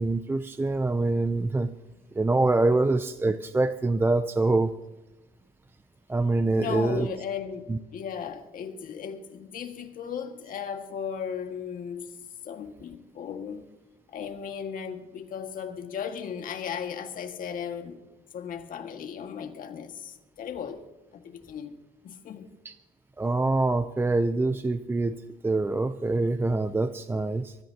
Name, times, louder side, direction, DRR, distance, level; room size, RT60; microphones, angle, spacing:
voice 1, 0.0-1.7 2.1-4.7 6.1-7.1 7.7-7.8 22.6-22.7 23.2-25.1 25.4-27.6, right 2 dB, 15° right, 0.5 m, -25 dB
voice 2, 6.4-7.6 7.9-13.7 14.1-18.0 18.3-20.8 21.1-21.8 22.0-22.5, left 7 dB, 55° left, 1.8 m, -36 dB
24.0 x 14.0 x 2.9 m
cardioid pair, 110°, 17 cm